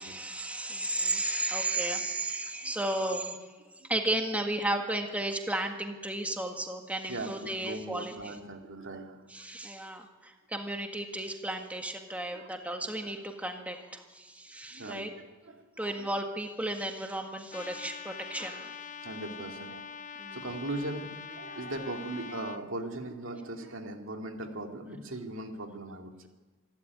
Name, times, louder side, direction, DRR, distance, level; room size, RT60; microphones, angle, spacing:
voice 1, 0.0-3.4 3.9-8.4 9.3-15.1 15.8-18.8 20.2-20.5, right 1 dB, 5° right, 4 dB, 1.7 m, -34 dB
voice 2, 7.1-9.4 12.1-12.8 14.7-16.1 19.0-19.8 20.3-26.3, right 2 dB, 70° right, 3 dB, 2.5 m, -39 dB
Trumpet, 17.5-22.6, left 6 dB, 40° left, 0.8 m, -44 dB
26.5 x 12.0 x 9.5 m, 1.3 s
head